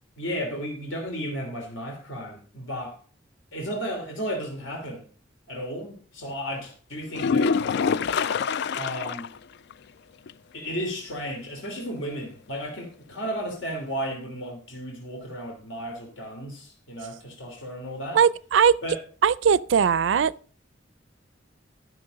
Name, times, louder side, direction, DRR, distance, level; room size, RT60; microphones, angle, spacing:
voice 1, 0.2-3.0 3.5-5.1 5.5-7.5 8.7-9.3 10.5-18.2 18.8-19.0, equal, 80° left, 3.0 m, -34 dB
sound 1, 7.1-9.4 9.7-9.8 10.3-10.4 14.1-14.2, left 5 dB, 60° left, 0.4 m, -25 dB
voice 2, 18.1-18.7 19.2-20.3, right 7 dB, 70° right, 0.4 m, -19 dB
13.0 x 6.2 x 5.2 m
head